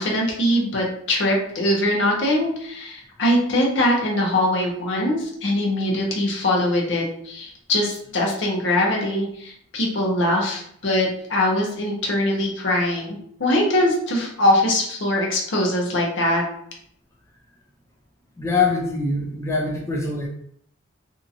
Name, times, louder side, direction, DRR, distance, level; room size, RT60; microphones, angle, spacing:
voice 1, 0.0-16.4, left 1 dB, 65° left, -1 dB, 0.8 m, -22 dB
voice 2, 18.4-20.3, left 4 dB, 15° left, -2 dB, 0.4 m, -23 dB
2.7 x 2.5 x 2.6 m, 0.67 s
head